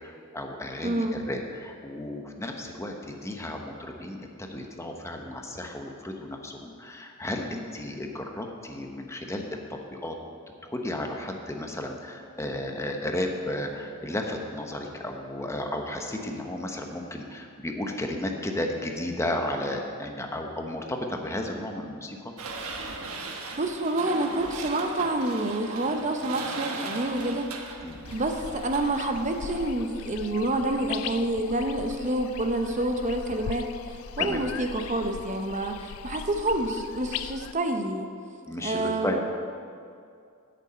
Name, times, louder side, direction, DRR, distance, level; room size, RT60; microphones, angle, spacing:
voice 1, 0.0-10.1 10.6-22.2 27.8-28.0 34.2-34.4 38.5-39.2, left 1 dB, 15° left, 3 dB, 0.9 m, -33 dB
voice 2, 0.8-1.2 23.6-27.5 28.1-38.1 38.6-39.2, right 1 dB, 35° right, 5 dB, 0.8 m, -28 dB
sound 1, 22.4-29.7, right 3 dB, 80° right, 1.2 m, -38 dB
sound 2, 28.0-37.5, left 9 dB, 65° left, 0.3 m, -39 dB
9.0 x 6.9 x 8.6 m, 2.3 s
head